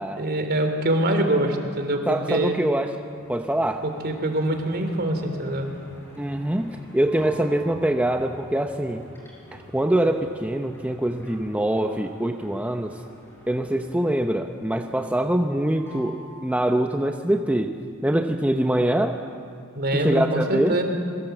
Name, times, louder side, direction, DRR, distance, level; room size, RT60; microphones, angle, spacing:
voice 1, 0.2-2.6 3.8-5.7 19.8-20.8, right 1 dB, 50° right, 6 dB, 3.2 m, -24 dB
voice 2, 2.1-2.9 3.3-3.8 6.2-9.0 9.5-13.0 13.5-17.7 18.0-19.2 19.9-20.7, right 1 dB, 5° right, 4 dB, 0.8 m, -24 dB
sound 1, 3.1-14.6 14.9-15.5 15.7-17.0, equal, 10° left, 6.6 m, -48 dB
25.5 x 23.0 x 8.0 m, 2.3 s
head